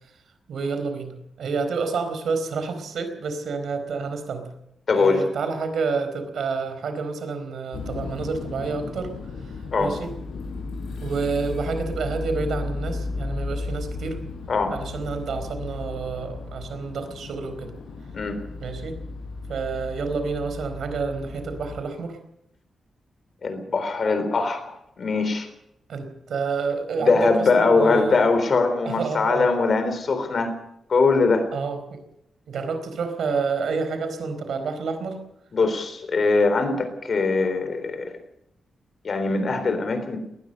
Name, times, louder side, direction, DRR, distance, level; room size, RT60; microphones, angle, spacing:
voice 1, 0.5-4.5 4.9-9.1 9.8-10.1 11.0-14.2 14.7-17.7 18.6-18.9 19.5-22.2 25.9-27.3 27.5-28.3 28.8-29.5 31.5-32.0 32.5-35.2, right 4 dB, 70° right, 9 dB, 4.2 m, -29 dB
voice 2, 4.9-5.3 9.7-10.0 14.5-14.8 18.1-18.4 23.4-25.5 27.0-30.5 30.9-31.5 35.5-38.2 39.0-40.2, left 3 dB, 40° left, 9 dB, 3.9 m, -22 dB
sound 1, 7.7-21.8, left 3 dB, 85° left, 5.8 m, -34 dB
20.5 x 19.5 x 6.7 m, 0.79 s
wide cardioid pair, 170°, 0 cm